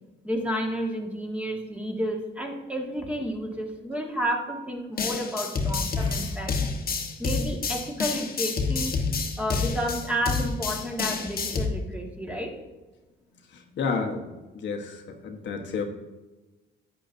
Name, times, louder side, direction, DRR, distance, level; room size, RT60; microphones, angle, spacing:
voice 1, 0.2-6.6 7.2-9.0 9.4-12.5, equal, 5° right, 0 dB, 1.7 m, -31 dB
sound 1, 5.0-11.7, left 4 dB, 50° left, 1.2 m, -28 dB
sound 2, 6.0-8.8 9.1-9.2 12.1-12.2 12.6-12.7, equal, 25° right, 1.9 m, -45 dB
voice 2, 13.8-14.3 14.5-15.9, left 5 dB, 65° left, 2 dB, 1.2 m, -30 dB
10.5 x 8.5 x 2.6 m, 1.2 s
cardioid pair, 90°, 20 cm